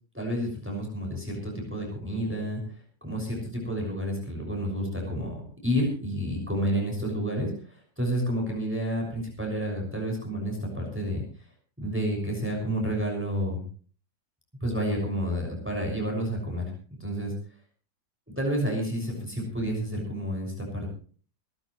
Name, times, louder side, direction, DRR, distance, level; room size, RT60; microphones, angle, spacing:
voice 1, 0.1-2.6 3.0-11.2 11.8-13.6 14.6-16.7 17.0-17.3 18.3-20.9, equal, 5° right, 0 dB, 6.3 m, -30 dB
26.0 x 12.0 x 3.2 m, 0.43 s
omnidirectional pair, 1.9 m